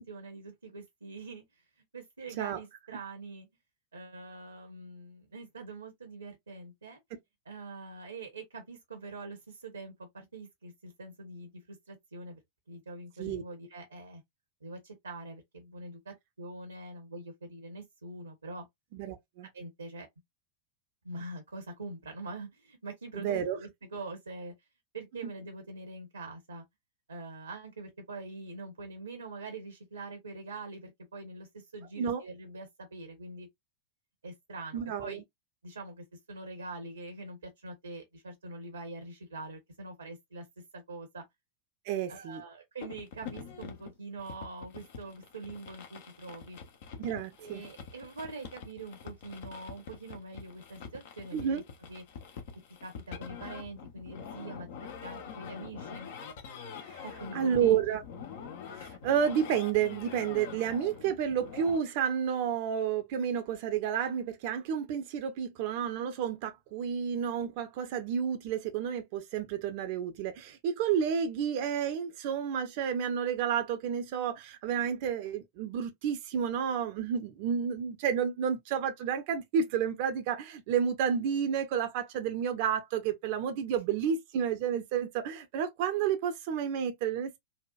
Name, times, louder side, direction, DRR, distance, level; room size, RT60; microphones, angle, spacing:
voice 1, 0.0-1.4 1.9-3.5 3.9-7.0 7.4-12.4 12.7-14.2 14.6-18.6 19.5-20.1 21.0-24.5 24.9-26.6 27.1-33.5 34.2-35.2 35.6-40.4 40.7-41.2 42.1-46.6 47.4-51.6 51.9-52.0 52.8-54.7 55.0-56.1 57.0-58.0, right 2 dB, 75° right, 0.9 m, -44 dB
voice 2, 18.9-19.5 23.1-23.6 32.0-32.2 34.7-35.2 41.9-42.4 47.0-47.6 51.3-51.6 56.8-57.0 57.3-58.0 58.7-87.4, right 8 dB, 45° right, 0.7 m, -31 dB
sound 1, 42.8-61.8, left 6 dB, 55° left, 0.8 m, -45 dB
4.1 x 2.4 x 2.3 m
figure-of-eight pair, 90°, 0 cm